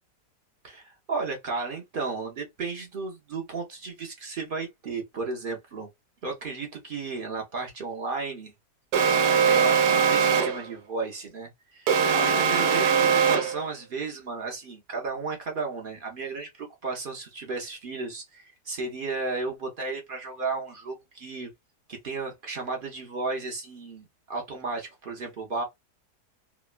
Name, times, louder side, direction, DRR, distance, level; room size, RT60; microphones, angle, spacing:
voice 1, 0.6-5.9 6.2-8.5 9.4-21.5 21.9-25.6, right 4 dB, 70° right, 0.5 m, -34 dB
Alarm, 8.9-10.7 11.9-13.7, right 6 dB, 90° right, 1.2 m, -21 dB
2.9 x 2.1 x 2.3 m
omnidirectional pair, 1.7 m